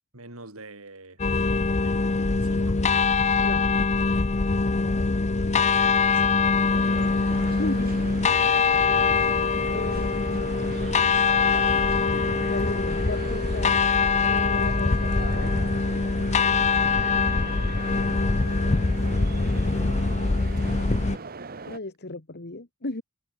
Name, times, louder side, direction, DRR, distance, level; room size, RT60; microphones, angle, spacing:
voice 1, 0.1-1.2 1.8-2.8 5.7-6.3 6.5-6.8 16.8-17.3, right 2 dB, 70° right, 6.2 m, -46 dB
sound 1, 1.2-21.2, left 4 dB, 30° left, 0.7 m, -23 dB
sound 2, 6.7-21.8, right 4 dB, 45° right, 1.4 m, -39 dB
voice 2, 7.5-8.0 9.7-11.1 12.5-13.8 14.3-15.5 20.2-20.5 21.7-23.0, left 2 dB, 50° left, 1.9 m, -36 dB
head